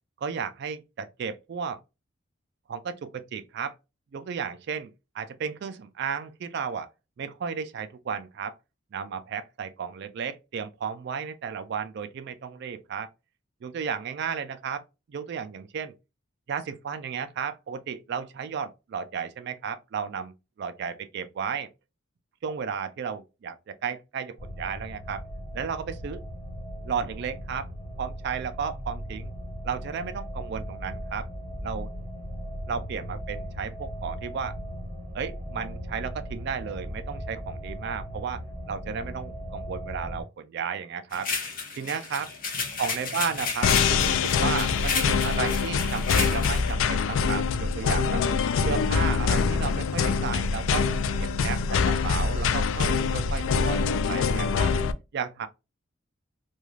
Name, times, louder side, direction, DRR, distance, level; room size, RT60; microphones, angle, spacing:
voice 1, 0.2-1.8 2.7-3.7 4.1-6.9 7.2-8.6 8.9-13.1 13.6-14.8 15.1-15.9 16.5-21.7 22.4-25.2 25.5-26.2 26.8-27.7 28.0-29.3 29.6-31.3 31.6-31.9 32.7-34.6 35.1-41.3 41.8-42.3 42.8-48.2 48.6-50.9 51.2-54.7 55.1-55.5, right 6 dB, 55° right, 0.3 m, -33 dB
sound 1, 24.4-40.2, equal, 5° left, 1.3 m, -38 dB
sound 2, 41.1-46.7, left 4 dB, 45° left, 0.7 m, -32 dB
sound 3, 43.6-54.9, left 5 dB, 75° left, 0.3 m, -24 dB
2.4 x 2.3 x 3.0 m
head